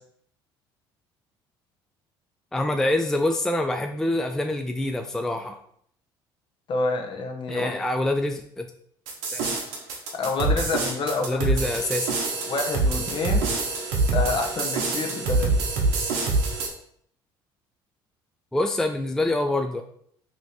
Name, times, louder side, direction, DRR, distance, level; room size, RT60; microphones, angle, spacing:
voice 1, 2.5-5.6 7.5-8.7 9.3-9.6 11.2-12.2 18.5-19.8, left 1 dB, 5° left, 5 dB, 0.3 m, -26 dB
voice 2, 6.7-7.7 10.1-11.5 12.5-13.5 14.1-15.5, left 3 dB, 45° left, 4 dB, 0.8 m, -28 dB
sound 1, 9.1-16.7, right 3 dB, 75° right, 0.9 m, -25 dB
3.0 x 2.8 x 4.1 m, 0.66 s
hypercardioid pair, 65°, 12 cm